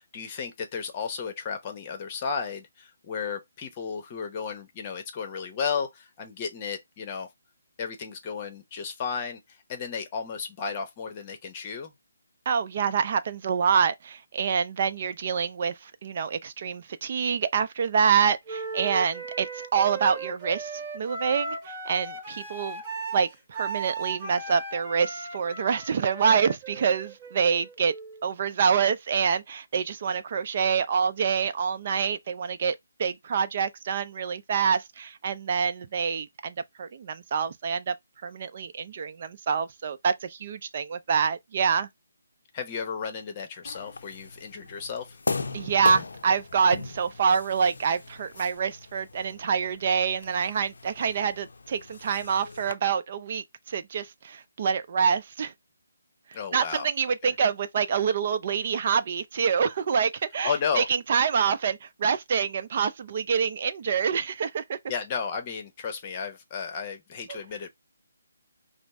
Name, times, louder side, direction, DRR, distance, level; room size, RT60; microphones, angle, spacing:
voice 1, 0.0-7.3 7.8-11.9 42.5-45.2 56.3-56.9 57.2-57.3 60.4-60.9 64.9-67.7, left 6 dB, 30° left, 1.0 m, -33 dB
voice 2, 12.5-22.8 23.1-27.9 28.2-32.7 33.0-37.9 38.2-41.9 45.5-55.5 56.5-64.8 67.3-67.4, right 6 dB, 45° right, 0.5 m, -26 dB
Wind instrument woodwind instrument, 18.5-28.3, right 3 dB, 20° right, 1.4 m, -37 dB
sound 1, 43.6-52.7, left 4 dB, 65° left, 0.5 m, -38 dB
5.1 x 2.1 x 3.5 m
figure-of-eight pair, 150°, 0 cm